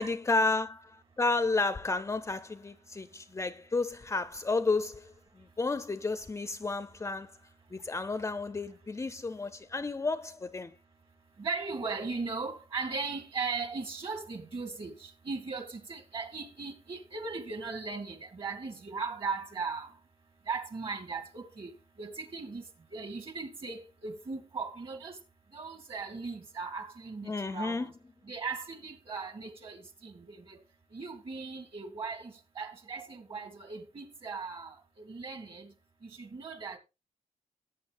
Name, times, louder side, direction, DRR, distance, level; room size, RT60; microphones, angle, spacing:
voice 1, 0.0-7.4 7.7-10.8 27.2-27.9, left 3 dB, 20° left, 0.5 m, -32 dB
voice 2, 11.4-19.9 20.5-21.7 22.0-22.6 22.9-25.2 25.5-27.9 28.3-30.6 30.9-35.7 36.0-36.8, right 4 dB, 45° right, 2.3 m, -38 dB
18.0 x 8.2 x 2.5 m
wide cardioid pair, 140°, 13 cm